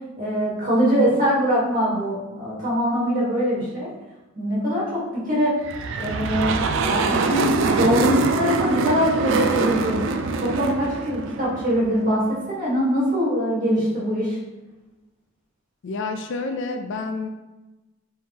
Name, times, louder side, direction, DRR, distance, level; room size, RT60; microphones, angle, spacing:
voice 1, 0.2-3.9 4.3-5.5 6.0-10.1 10.4-14.4, equal, 40° right, -6 dB, 1.4 m, -23 dB
sound 1, 5.6-12.1, right 4 dB, 55° right, 0.3 m, -24 dB
voice 2, 15.8-17.3, left 3 dB, 55° left, 5 dB, 0.4 m, -29 dB
4.5 x 3.5 x 2.8 m, 1.1 s
head